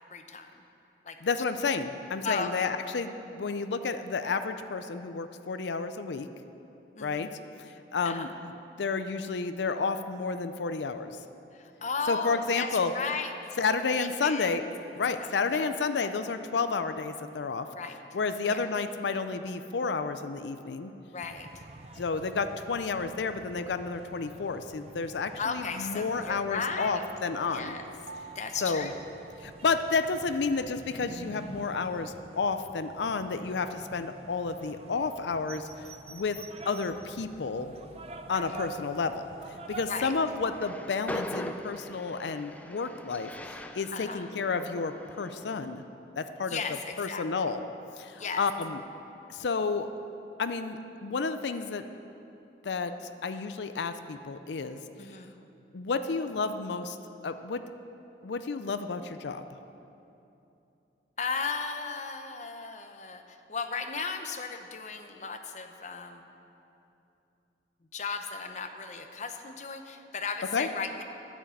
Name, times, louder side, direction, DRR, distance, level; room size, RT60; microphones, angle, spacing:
voice 1, 0.1-0.5 1.0-1.2 2.2-2.7 6.9-7.3 8.0-8.3 11.5-12.7 12.9-13.5 13.9-14.5 15.2-15.7 16.0-16.1 17.7-18.0 18.5-18.7 21.0-21.6 25.4-27.0 27.5-27.8 28.3-29.0 38.2-38.5 39.9-40.1 43.9-44.3 46.5-47.2 48.1-48.4 55.0-55.3 61.2-66.2 67.9-71.0, left 5 dB, 40° left, 6 dB, 0.7 m, -36 dB
voice 2, 1.2-6.3 7.0-7.3 7.6-8.5 8.8-11.2 12.1-12.9 13.6-14.6 14.9-17.7 18.1-20.9 22.0-27.8 28.6-28.9 29.4-36.4 36.7-37.7 38.3-39.3 39.7-45.8 46.2-46.6 47.0-47.6 48.0-48.8 49.3-49.9 50.4-51.8 52.6-54.8 55.7-57.0 57.2-57.6 58.2-59.4 70.5-70.7, left 4 dB, 80° left, 10 dB, 0.5 m, -31 dB
sound 1, 21.2-40.6, right 2 dB, 35° right, 0.7 m, -48 dB
Piano, 26.7-30.5 30.8-30.9, right 4 dB, 75° right, 0.5 m, -48 dB
Train, 40.4-45.7, left 1 dB, 10° left, 0.4 m, -41 dB
10.0 x 8.2 x 7.6 m, 2.8 s
head